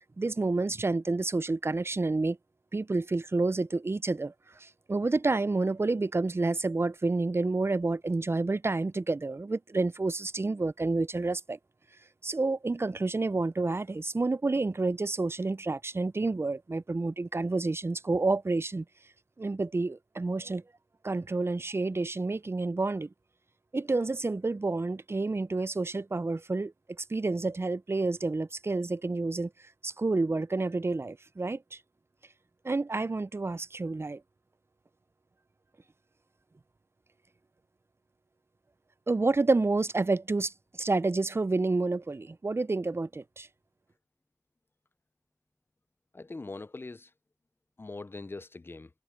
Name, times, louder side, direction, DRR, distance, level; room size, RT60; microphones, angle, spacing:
voice 1, 0.0-2.4 2.7-4.3 4.6-11.6 12.2-18.8 19.4-20.6 21.0-23.1 23.7-26.7 27.1-29.5 29.8-31.6 32.6-34.2 39.1-40.5 40.8-43.5, right 3 dB, 45° right, 0.4 m, -29 dB
voice 2, 46.1-47.1 47.8-48.9, left 3 dB, 40° left, 0.4 m, -42 dB
wide cardioid pair, 45°, 6 cm